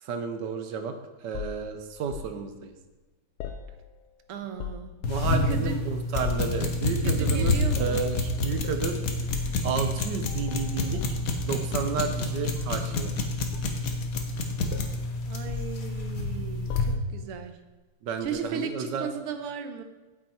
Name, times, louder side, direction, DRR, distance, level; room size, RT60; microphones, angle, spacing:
voice 1, 0.0-0.9 1.2-2.7 5.1-9.0 9.6-11.2 11.4-13.1 18.0-19.1, right 5 dB, 65° right, 7 dB, 1.3 m, -31 dB
sound 1, 1.3-2.3 3.4-4.1 4.4-5.0 5.4-5.8 6.2-6.6 7.7-8.1 8.6-8.9 9.3-9.5 10.2-11.7 11.9-12.9 13.5-14.4 14.7-15.0 15.5-16.3 16.7-17.3 18.2-18.4, left 8 dB, 80° left, 1.5 m, -37 dB
voice 2, 4.3-4.9 5.2-5.8 6.8-8.0 15.3-17.6 18.2-19.8, right 6 dB, 90° right, 8 dB, 1.8 m, -36 dB
sound 2, 5.0-16.9, left 2 dB, 50° left, 1.2 m, -28 dB
8.7 x 8.7 x 4.3 m, 1.2 s
omnidirectional pair, 2.4 m